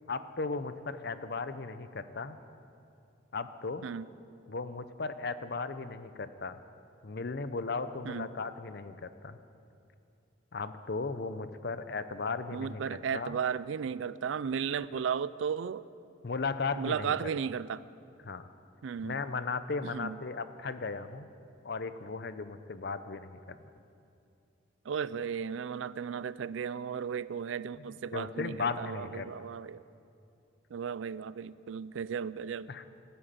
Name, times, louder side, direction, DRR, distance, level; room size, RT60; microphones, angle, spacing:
voice 1, 0.1-2.4 3.3-3.9 4.5-6.6 7.0-9.4 10.5-13.4 16.2-17.2 18.2-18.5 19.0-21.3 21.6-23.6 27.8-27.9 28.1-29.3 32.7-32.9, left 4 dB, 55° left, 12 dB, 0.6 m, -36 dB
voice 2, 12.5-15.9 16.8-17.8 18.8-19.2 19.8-20.2 24.9-29.8 30.7-32.7, right 7 dB, 75° right, 18 dB, 0.4 m, -35 dB
12.5 x 10.0 x 9.0 m, 2.6 s
head